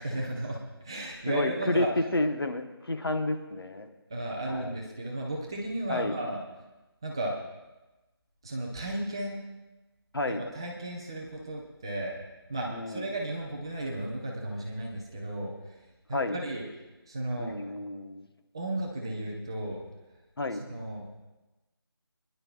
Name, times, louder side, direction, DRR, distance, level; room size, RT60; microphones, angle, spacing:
voice 1, 0.0-1.9 4.1-6.4 7.0-7.3 8.4-9.4 10.3-12.1 12.5-15.8 16.1-16.6 17.1-17.6 18.5-19.8 20.7-21.1, right 1 dB, 10° right, -2 dB, 0.6 m, -34 dB
voice 2, 1.3-3.9 4.5-4.8 5.9-6.2 10.1-10.4 12.7-13.1 16.1-16.4 17.4-18.3 20.4-20.6, left 2 dB, 65° left, 5 dB, 1.2 m, -30 dB
26.5 x 10.5 x 2.4 m, 1.1 s
figure-of-eight pair, 165°, 13 cm